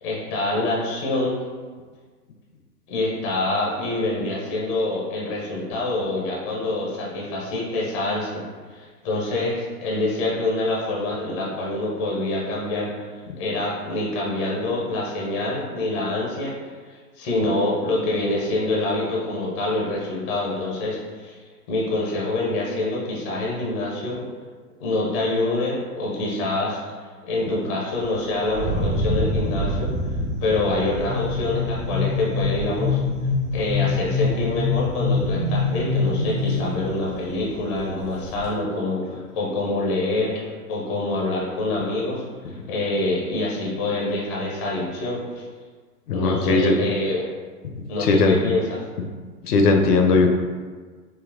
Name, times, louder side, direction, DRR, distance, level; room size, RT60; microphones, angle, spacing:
voice 1, 0.0-1.4 2.9-8.4 8.7-13.1 13.4-16.5 16.9-21.4 21.7-24.2 24.8-26.8 27.3-29.9 30.4-33.0 33.5-45.4 46.1-47.3 47.9-48.8, left 2 dB, 20° left, -4 dB, 0.4 m, -26 dB
Thunder, 27.9-38.5, right 1 dB, 40° right, 1.3 m, -31 dB
sound 1, 31.1-36.7, left 4 dB, 60° right, 1.2 m, -24 dB
voice 2, 46.1-46.7 48.0-48.4 49.4-50.3, left 3 dB, 75° left, 4 dB, 0.6 m, -18 dB
3.8 x 2.1 x 2.4 m, 1.5 s
hypercardioid pair, 115°, 47 cm